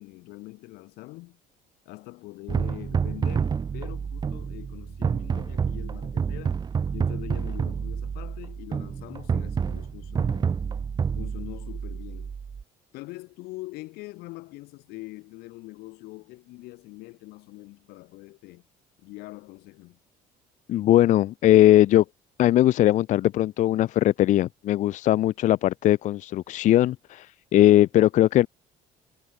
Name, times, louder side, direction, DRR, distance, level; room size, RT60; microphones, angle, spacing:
voice 1, 0.0-1.4 1.9-6.6 6.9-10.6 11.1-12.3 12.9-18.6 19.0-20.0, left 21 dB, 85° left, 5.8 m, -43 dB
sound 1, 2.5-12.6, right 6 dB, 25° right, 0.7 m, -29 dB
voice 2, 20.7-22.0 22.4-28.5, left 13 dB, 50° left, 0.4 m, -20 dB
cardioid pair, 120°, 16 cm